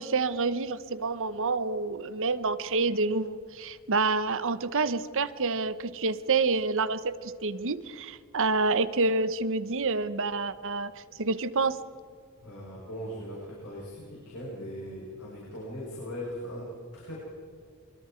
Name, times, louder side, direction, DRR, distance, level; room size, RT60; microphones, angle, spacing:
voice 1, 0.0-10.9 11.2-11.8, right 3 dB, 65° right, 13 dB, 1.0 m, -28 dB
voice 2, 12.4-16.7 16.9-17.2, equal, 85° left, -5 dB, 7.3 m, -39 dB
24.5 x 24.0 x 4.6 m, 2.2 s
head